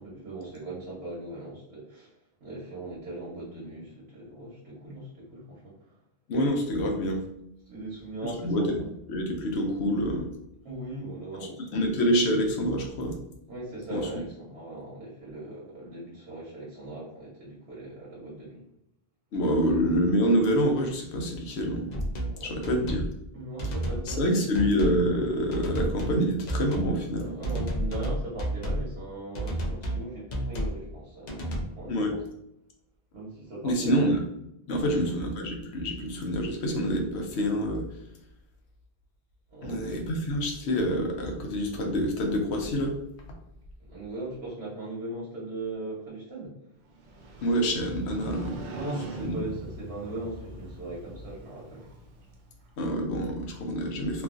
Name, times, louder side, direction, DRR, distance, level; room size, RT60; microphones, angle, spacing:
voice 1, 0.0-2.1 2.4-5.7 7.7-8.7 10.6-11.8 13.5-18.6 22.3-22.8 23.3-24.4 27.1-32.2 33.1-34.1 34.7-35.1 39.5-39.9 43.9-46.5 48.7-51.8, right 2 dB, 80° right, -7 dB, 1.3 m, -39 dB
voice 2, 6.3-7.2 8.4-8.8 9.1-10.3 11.7-13.1 13.9-14.0 19.3-21.9 22.4-23.1 24.1-27.3 31.9-32.1 33.6-34.2 34.7-37.9 39.6-42.9 47.4-48.7 49.2-49.4 52.8-54.2, equal, 85° left, 2 dB, 0.9 m, -26 dB
sound 1, 21.9-22.4 22.6-23.1 23.6-24.3 24.5-25.0 25.5-26.2 26.5-26.9 27.4-28.8 29.3-30.0 30.3-30.8 31.3-31.6, right 1 dB, 50° left, 0.6 m, -31 dB
Motorcycle, 46.9-52.8, right 1 dB, 55° right, 0.6 m, -42 dB
3.0 x 2.4 x 2.4 m, 0.78 s
omnidirectional pair, 1.1 m